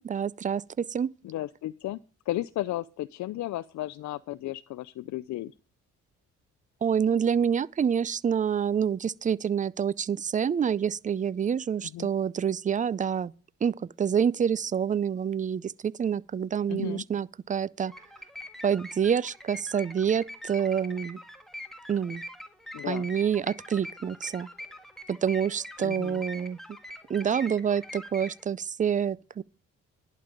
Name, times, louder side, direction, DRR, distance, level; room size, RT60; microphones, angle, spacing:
voice 1, 0.0-1.1 6.8-13.3 13.6-17.9 18.6-21.2 21.9-22.2 22.9-24.5 25.1-26.6 27.1-29.4, right 7 dB, 25° right, 0.4 m, -27 dB
voice 2, 1.2-2.0 2.3-5.5 11.9-12.1 16.7-17.0 22.7-23.1 25.8-26.2, left 15 dB, 70° left, 0.5 m, -34 dB
sound 1, 17.9-28.4, equal, ahead, 1.6 m, -43 dB
11.0 x 5.3 x 7.6 m
cardioid pair, 90°, 30 cm